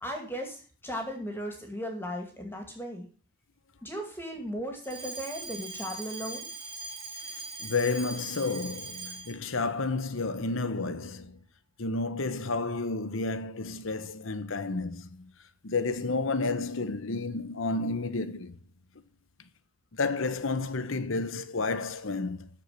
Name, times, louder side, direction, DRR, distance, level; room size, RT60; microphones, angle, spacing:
voice 1, 0.0-3.1 3.8-6.5, equal, 10° left, 2.2 m, -36 dB
Alarm, 4.8-9.5, right 3 dB, 25° right, 2.2 m, -41 dB
voice 2, 7.6-11.4 11.8-15.3 15.6-18.6 19.9-22.5, left 3 dB, 65° left, 1.0 m, -31 dB
13.5 x 4.8 x 8.3 m
head